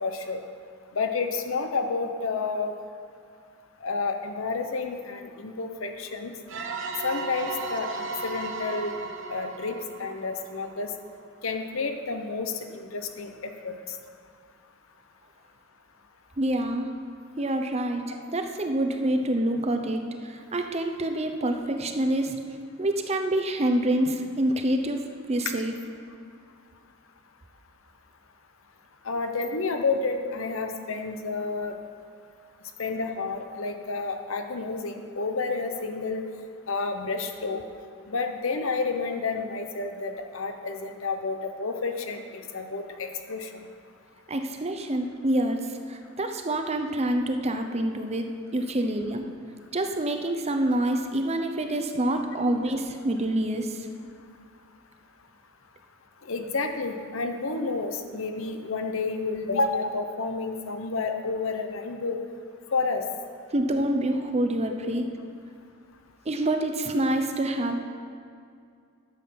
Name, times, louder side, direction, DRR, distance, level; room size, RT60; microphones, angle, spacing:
voice 1, 0.0-0.4 0.9-2.7 3.8-6.3 7.0-8.9 9.3-10.9 11.4-13.8 29.0-31.7 32.8-36.2 36.7-37.6 38.1-43.5 56.2-62.2 62.7-63.0 64.8-64.9, left 4 dB, 70° left, 6 dB, 0.9 m, -30 dB
sound 1, 6.5-11.1, right 3 dB, 60° right, 1.0 m, -35 dB
voice 2, 16.4-16.9 17.4-22.4 22.8-25.0 25.3-25.7 44.3-48.3 48.5-49.2 49.7-53.9 63.5-65.1 66.3-67.8, right 1 dB, 30° right, 5 dB, 0.7 m, -27 dB
11.0 x 7.5 x 5.9 m, 2.3 s
head